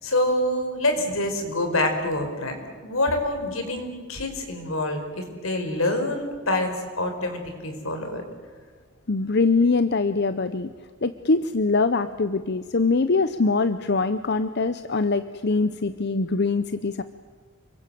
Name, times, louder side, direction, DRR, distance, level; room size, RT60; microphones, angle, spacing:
voice 1, 0.0-8.2, left 1 dB, 80° left, 5 dB, 4.9 m, -26 dB
voice 2, 9.1-10.7 11.0-17.0, left 3 dB, 55° left, 12 dB, 0.7 m, -23 dB
29.5 x 23.5 x 7.7 m, 1.5 s
head